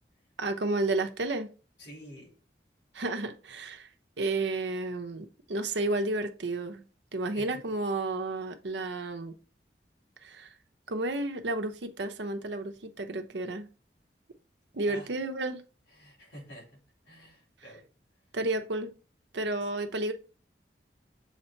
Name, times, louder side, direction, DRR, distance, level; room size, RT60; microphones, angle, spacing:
voice 1, 0.4-1.5 2.9-3.9 4.2-6.8 7.1-9.4 10.2-10.5 10.9-13.7 14.7-15.6 18.3-19.0 19.3-20.1, right 2 dB, 80° right, 0.8 m, -31 dB
voice 2, 1.8-2.3 7.3-7.6 14.9-15.1 15.9-17.9 19.6-19.7, equal, 80° left, 3.6 m, -49 dB
7.3 x 2.9 x 4.5 m
head